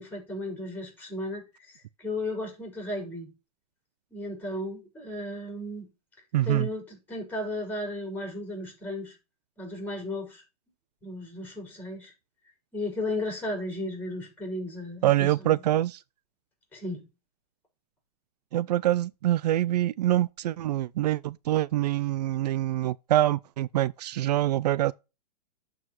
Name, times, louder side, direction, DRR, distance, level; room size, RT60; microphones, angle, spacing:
voice 1, 0.0-3.3 4.1-5.9 6.4-9.2 9.6-10.4 11.0-12.1 12.7-15.6 16.7-17.1, left 1 dB, 10° left, 5.0 m, -35 dB
voice 2, 6.3-6.7 15.0-16.0 18.5-24.9, right 14 dB, 70° right, 0.4 m, -25 dB
12.0 x 4.8 x 3.0 m
hypercardioid pair, 140°, 21 cm